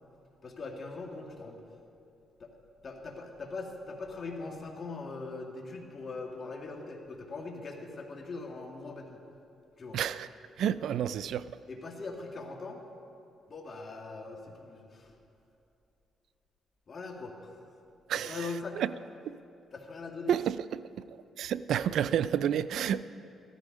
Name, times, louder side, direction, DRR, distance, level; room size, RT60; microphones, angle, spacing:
voice 1, 0.4-1.6 2.4-2.5 2.8-9.2 9.8-10.0 11.7-12.8 13.5-15.2 16.9-17.6 18.1-18.8 19.7-20.3, left 3 dB, 40° left, 2 dB, 2.1 m, -41 dB
voice 2, 9.9-10.3 10.6-11.4 18.1-18.4 18.8-18.9 19.3-19.4 20.3-20.6 21.0-21.1 21.4-23.0, right 9 dB, 75° right, 16 dB, 0.3 m, -29 dB
14.5 x 13.5 x 5.2 m, 2.7 s
cardioid pair, 80°, 0 cm